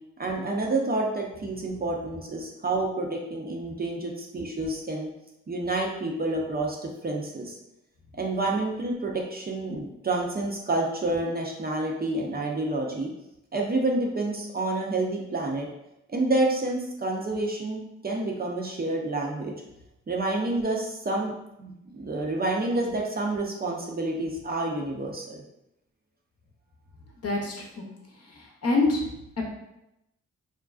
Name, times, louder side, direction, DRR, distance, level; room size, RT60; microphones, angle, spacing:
voice 1, 0.2-5.1 5.5-7.6 8.2-13.1 13.5-15.7 16.1-19.5 20.1-21.3 21.6-25.4, right 2 dB, 30° right, -1 dB, 0.5 m, -28 dB
voice 2, 27.2-27.8 28.3-29.0, left 2 dB, 50° left, 0 dB, 0.7 m, -26 dB
2.4 x 2.2 x 2.4 m, 0.86 s
supercardioid pair, 40°, 32 cm